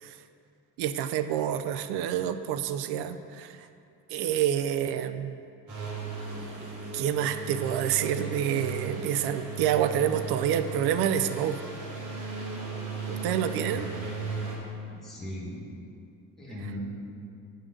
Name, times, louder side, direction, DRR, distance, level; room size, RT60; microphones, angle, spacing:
voice 1, 0.8-3.7 4.1-5.4 6.9-11.6 13.1-13.9, right 10 dB, 75° right, 10 dB, 0.5 m, -28 dB
sound 1, 5.7-14.6, right 4 dB, 50° right, 1.6 m, -36 dB
voice 2, 13.5-13.9 14.9-15.6 16.4-16.8, left 1 dB, ahead, -7 dB, 1.3 m, -39 dB
9.2 x 3.8 x 6.5 m, 2.5 s
cardioid pair, 155°, 39 cm